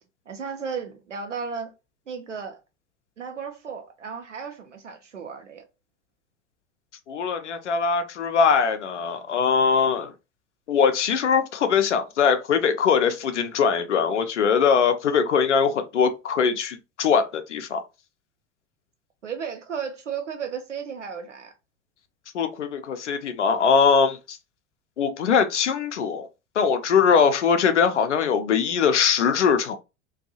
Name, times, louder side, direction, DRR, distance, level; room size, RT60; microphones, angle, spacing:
voice 1, 0.3-1.7 2.1-2.6 3.2-5.6 19.2-21.5, right 6 dB, 80° right, 0.7 m, -34 dB
voice 2, 7.1-10.1 10.7-17.8 22.3-24.4 25.0-26.3 26.6-29.8, left 6 dB, 75° left, 0.6 m, -21 dB
2.5 x 2.3 x 2.7 m
figure-of-eight pair, 75°, 36 cm